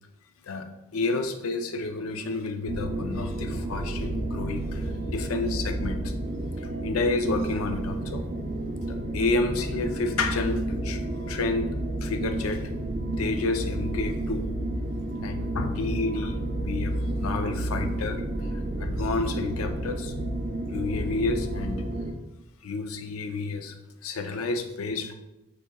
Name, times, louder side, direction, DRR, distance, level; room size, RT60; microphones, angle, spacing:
voice 1, 0.9-6.1 6.6-8.3 8.9-11.7 12.0-12.7 13.2-14.5 15.2-20.1 20.7-21.8 22.6-23.8 24.0-25.1, left 3 dB, 85° left, 7 dB, 0.5 m, -30 dB
sound 1, 2.7-22.1, right 1 dB, 35° right, 0.3 m, -31 dB
6.7 x 2.8 x 2.2 m, 0.96 s
head